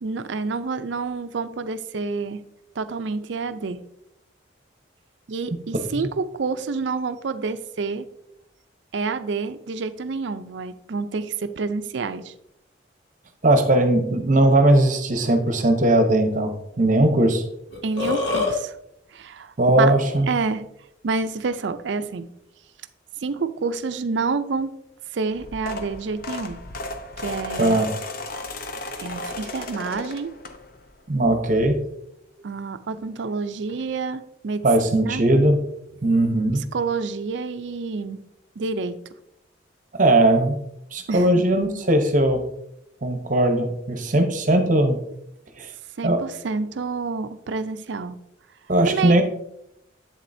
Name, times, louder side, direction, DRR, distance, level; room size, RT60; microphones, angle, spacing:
voice 1, 0.0-2.4 2.8-3.8 5.3-8.1 8.9-12.3 17.8-18.8 19.1-19.9 20.3-20.6 21.0-22.3 23.2-24.7 25.1-26.6 27.2-27.8 29.0-30.3 32.4-34.7 34.9-35.2 36.5-38.2 38.6-39.0 41.1-41.4 46.0-48.2 48.8-49.2, right 4 dB, 70° right, 11 dB, 0.5 m, -28 dB
voice 2, 13.4-17.4 19.6-20.3 27.6-27.9 31.1-31.8 34.6-35.6 36.0-36.6 39.9-40.6 40.9-42.4 43.0-45.0 45.6-45.7 46.0-46.2 48.7-49.2, right 1 dB, 40° right, 6 dB, 0.9 m, -19 dB
Burping eructation, 17.7-18.5, left 3 dB, 70° left, 2.2 m, -24 dB
sound 1, 25.3-30.9 31.4-31.7 32.9-33.0 33.2-33.3 33.7-33.8, left 2 dB, 50° left, 0.7 m, -35 dB
8.0 x 7.3 x 2.7 m, 0.80 s
head